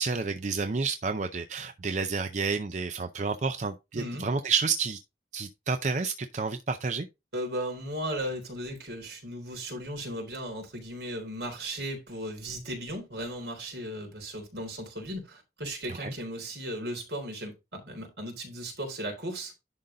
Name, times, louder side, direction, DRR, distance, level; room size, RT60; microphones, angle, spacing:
voice 1, 0.0-5.0 5.3-7.1 16.0-16.1, right 4 dB, 40° right, 0.5 m, -30 dB
voice 2, 4.0-4.3 7.3-19.5, equal, 70° right, 3.7 m, -36 dB
11.0 x 3.9 x 3.7 m
head